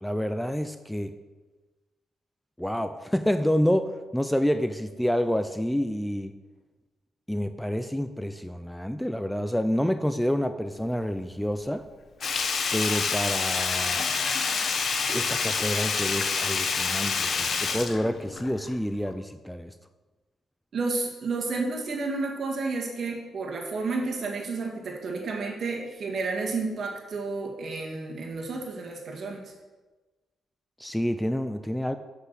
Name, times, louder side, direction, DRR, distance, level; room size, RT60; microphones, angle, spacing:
voice 1, 0.0-1.1 2.6-6.3 7.3-11.9 12.7-14.0 15.1-19.7 30.8-32.0, equal, 5° left, 10 dB, 0.5 m, -28 dB
Sink (filling or washing), 12.2-18.7 19.1-19.2, left 5 dB, 60° left, 1.0 m, -27 dB
voice 2, 20.7-29.4, right 3 dB, 60° right, 1 dB, 1.9 m, -31 dB
7.6 x 5.9 x 6.1 m, 1.2 s
supercardioid pair, 60°, 0 cm